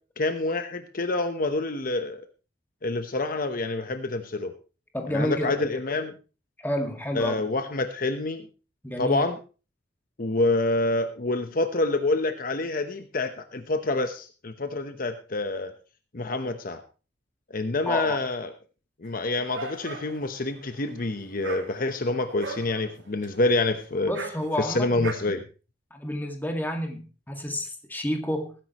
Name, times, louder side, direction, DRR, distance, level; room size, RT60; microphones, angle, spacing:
voice 1, 0.2-2.2 2.8-4.5 5.1-6.2 7.1-8.5 9.0-9.4 10.2-15.7 16.1-16.8 17.5-18.5 19.0-24.1 24.6-25.4, left 2 dB, 50° left, 8 dB, 1.0 m, -27 dB
voice 2, 4.9-5.5 6.6-7.4 8.8-9.2 17.8-18.2 24.1-25.0 25.9-28.5, left 1 dB, 10° left, 4 dB, 2.0 m, -29 dB
Dog, 19.1-25.1, right 3 dB, 80° right, 2.3 m, -40 dB
19.5 x 10.0 x 3.0 m, 0.34 s
head